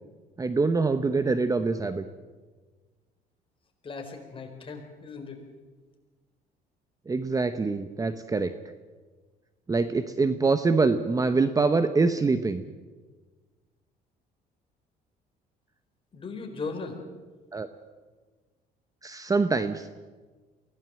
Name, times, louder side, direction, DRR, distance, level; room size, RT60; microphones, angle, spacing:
voice 1, 0.4-2.0 7.1-8.5 9.7-12.6 17.5-17.7 19.0-19.9, right 4 dB, 20° right, 10 dB, 1.0 m, -24 dB
voice 2, 3.8-5.4 16.1-17.0, left 4 dB, 30° left, 3 dB, 4.6 m, -37 dB
23.5 x 17.0 x 7.6 m, 1.3 s
cardioid pair, 110°, 17 cm